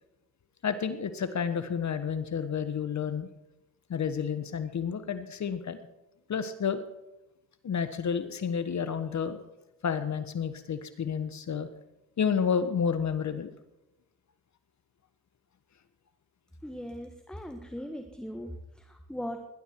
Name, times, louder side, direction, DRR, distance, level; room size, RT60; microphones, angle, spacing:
voice 1, 0.6-3.3 3.9-5.8 6.3-6.8 7.6-9.4 9.8-11.7 12.2-13.5, left 7 dB, 45° left, 11 dB, 1.3 m, -30 dB
voice 2, 16.6-19.5, equal, ahead, 6 dB, 1.5 m, -39 dB
19.0 x 11.5 x 4.6 m, 0.93 s
supercardioid pair, 70°, 38 cm